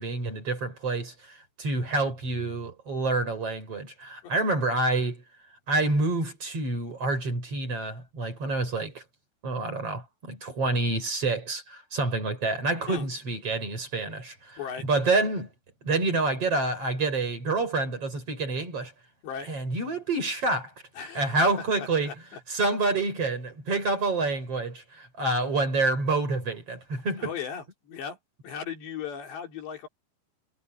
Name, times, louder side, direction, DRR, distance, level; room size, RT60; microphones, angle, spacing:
voice 1, 0.0-5.2 5.7-9.0 9.4-15.5 15.8-18.9 19.5-20.7 21.1-22.1 22.5-27.3, right 3 dB, 35° right, 6.4 m, -28 dB
voice 2, 21.0-21.4 21.8-22.2 27.2-28.2 28.4-29.9, left 7 dB, 75° left, 5.8 m, -37 dB
omnidirectional pair, 5.1 m